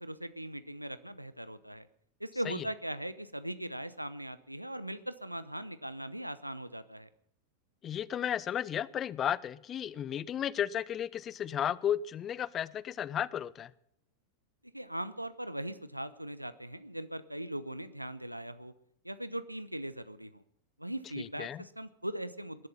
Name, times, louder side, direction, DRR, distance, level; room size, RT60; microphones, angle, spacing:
voice 1, 0.0-1.9 2.2-7.1 14.7-18.7 19.0-20.4 20.8-22.7, right 1 dB, 90° right, 14 dB, 0.8 m, -40 dB
voice 2, 7.8-13.7 21.2-21.6, left 10 dB, 25° left, 22 dB, 0.6 m, -34 dB
20.5 x 11.5 x 5.6 m, 0.73 s
figure-of-eight pair, 90°, 0 cm